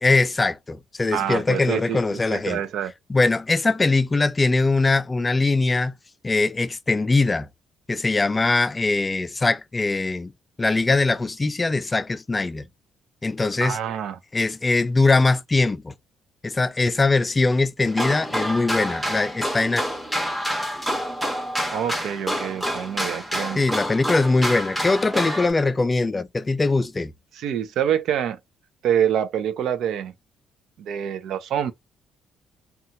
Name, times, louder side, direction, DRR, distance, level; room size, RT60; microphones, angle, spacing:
voice 1, 0.0-2.6 3.1-5.9 6.2-7.5 7.9-10.3 10.6-12.7 13.2-13.8 14.3-15.9 16.4-19.8 23.6-27.1, left 3 dB, 25° left, 0.3 m, -21 dB
voice 2, 1.1-2.9 13.6-14.2 21.7-23.6 27.3-28.4 28.8-30.1 30.8-31.7, right 9 dB, 70° right, 0.5 m, -26 dB
sound 1, 17.9-25.5, equal, ahead, 0.9 m, -28 dB
2.5 x 2.3 x 2.8 m
supercardioid pair, 75°, 0 cm